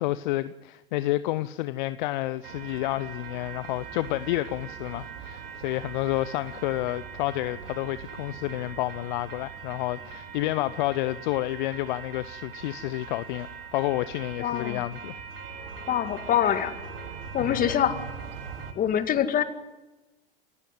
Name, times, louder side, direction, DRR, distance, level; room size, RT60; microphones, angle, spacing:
voice 1, 0.0-15.2 17.4-17.7, left 16 dB, 50° left, 0.8 m, -30 dB
sound 1, 2.4-18.7, right 6 dB, 70° right, 3.1 m, -41 dB
voice 2, 14.4-14.8 15.9-16.8 17.3-18.0 18.8-19.4, left 9 dB, 30° left, 2.2 m, -24 dB
27.0 x 15.5 x 9.4 m
figure-of-eight pair, 95°, 30 cm